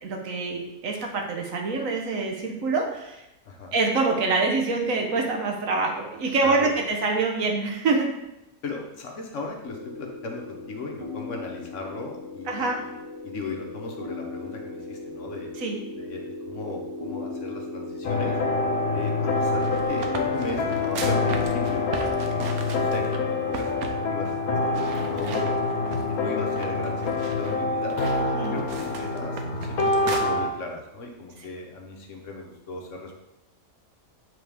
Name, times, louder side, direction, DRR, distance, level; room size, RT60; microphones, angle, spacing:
voice 1, 0.0-3.2 3.7-8.1 12.5-12.8 15.6-15.8 28.2-28.6, right 3 dB, 70° right, 1 dB, 1.3 m, -25 dB
voice 2, 3.5-3.8 6.4-6.7 8.6-13.0 13.2-15.5 15.9-18.4 18.9-25.5 26.1-28.0 28.5-33.2, left 3 dB, 60° left, 1 dB, 1.2 m, -37 dB
sound 1, 9.6-22.9, left 2 dB, 25° right, 1.0 m, -37 dB
sound 2, 18.0-30.5, left 3 dB, 85° left, 1.2 m, -26 dB
sound 3, 19.4-23.2 23.5-24.0 24.3-24.4 24.7-26.2 26.6-30.2, right 5 dB, 85° right, 1.2 m, -37 dB
7.8 x 3.8 x 3.5 m, 0.91 s
omnidirectional pair, 1.5 m